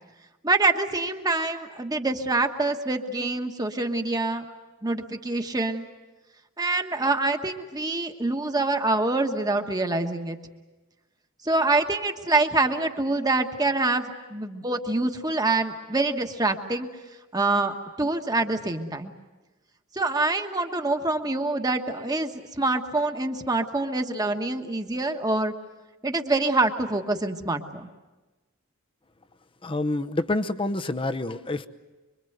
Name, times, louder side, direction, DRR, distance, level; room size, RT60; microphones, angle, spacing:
voice 1, 0.4-4.4 4.8-5.9 6.6-10.4 11.4-14.0 14.3-16.9 17.3-19.1 19.9-25.5 26.0-27.9, right 2 dB, 20° right, 5 dB, 1.4 m, -25 dB
voice 2, 29.6-31.7, left 2 dB, 25° left, 10 dB, 0.8 m, -27 dB
25.5 x 24.0 x 8.0 m, 1.2 s
head